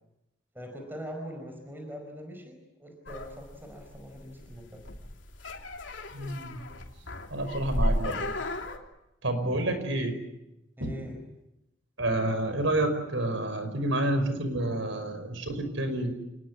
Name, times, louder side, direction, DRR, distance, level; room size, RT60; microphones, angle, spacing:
voice 1, 0.5-4.7 10.8-11.2, equal, 10° right, 4 dB, 4.8 m, -42 dB
sound 1, 3.1-8.8, left 1 dB, 75° left, 3.2 m, -34 dB
voice 2, 6.1-6.6 7.3-8.2 9.2-10.2 10.8-10.9 12.0-16.1, right 1 dB, 90° right, 9 dB, 5.3 m, -29 dB
28.0 x 20.0 x 9.6 m, 0.89 s
head